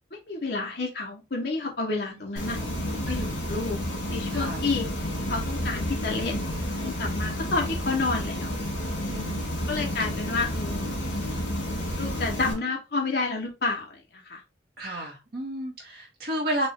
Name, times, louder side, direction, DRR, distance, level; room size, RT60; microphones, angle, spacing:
voice 1, 0.1-2.6 3.1-3.8 4.1-4.9 5.3-6.4 6.8-8.5 9.7-10.8 12.0-14.4, left 3 dB, 55° left, 0 dB, 0.9 m, -30 dB
sound 1, 2.4-12.5, left 1 dB, 85° left, 1.9 m, -30 dB
voice 2, 4.3-4.6 9.0-10.0 14.8-16.7, right 1 dB, 50° right, -3 dB, 1.1 m, -33 dB
4.3 x 2.4 x 4.2 m, 0.26 s
head